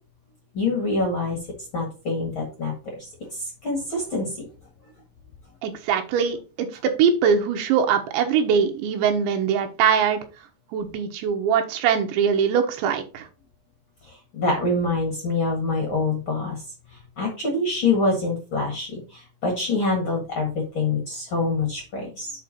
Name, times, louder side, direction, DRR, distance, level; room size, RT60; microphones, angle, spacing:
voice 1, 0.5-1.4 1.7-2.7 3.3-4.4 14.3-16.6 17.2-22.3, left 3 dB, 50° left, 1 dB, 1.5 m, -25 dB
voice 2, 5.6-10.2 10.7-13.3, right 7 dB, 90° right, 5 dB, 3.4 m, -22 dB
8.1 x 4.5 x 4.2 m, 0.33 s
omnidirectional pair, 5.1 m